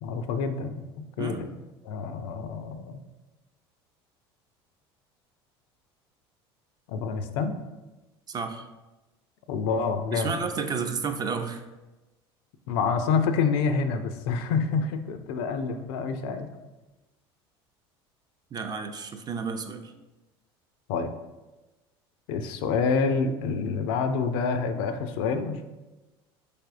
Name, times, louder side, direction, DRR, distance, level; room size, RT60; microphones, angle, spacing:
voice 1, 0.0-1.5 1.8-3.0 6.9-7.6 9.5-10.4 12.7-16.5 20.9-21.1 22.3-25.7, left 5 dB, 70° left, 8 dB, 0.4 m, -27 dB
voice 2, 1.2-1.6 8.3-8.7 10.1-11.6 18.5-19.9, right 5 dB, 30° right, 6 dB, 0.4 m, -31 dB
4.1 x 3.4 x 2.5 m, 1.1 s
hypercardioid pair, 85°, 13 cm